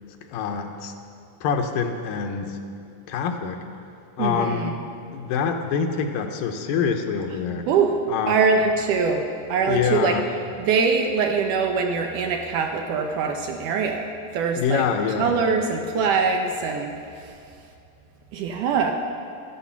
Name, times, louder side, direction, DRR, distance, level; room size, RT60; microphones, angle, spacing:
voice 1, 0.3-0.9 1.4-2.6 3.1-3.6 4.2-4.7 5.1-7.7 8.1-8.4 9.7-10.2 14.6-15.3, left 6 dB, 75° left, 5 dB, 2.6 m, -25 dB
voice 2, 4.2-4.8 7.7-8.0 8.3-10.2 10.6-14.1 14.3-14.8 15.2-16.9 18.3-18.9, right 5 dB, 75° right, 3 dB, 2.1 m, -23 dB
14.5 x 13.0 x 5.8 m, 2.5 s
omnidirectional pair, 4.2 m